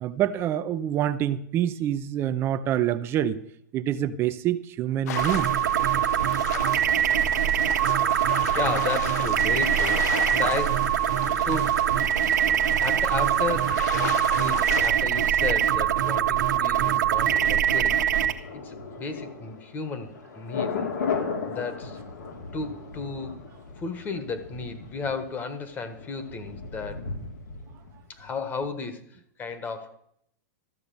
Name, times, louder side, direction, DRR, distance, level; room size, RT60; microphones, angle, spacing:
voice 1, 0.0-3.4 3.7-5.5, right 11 dB, 25° right, 0.6 m, -26 dB
sound 1, 5.1-14.9, left 9 dB, 65° left, 0.9 m, -35 dB
sound 2, 5.2-18.3, right 10 dB, 80° right, 1.3 m, -23 dB
voice 2, 8.5-10.0 10.3-10.9 11.4-11.8 12.8-13.8 14.3-18.0 18.5-20.1 20.3-20.8 21.5-22.0 22.5-23.4 23.8-27.0 28.1-29.0 29.4-29.9, left 4 dB, 20° left, 1.3 m, -33 dB
Thunder, 16.4-28.3 28.6-28.7, left 5 dB, 85° left, 2.7 m, -36 dB
13.5 x 6.8 x 6.9 m
hypercardioid pair, 150°, 10 cm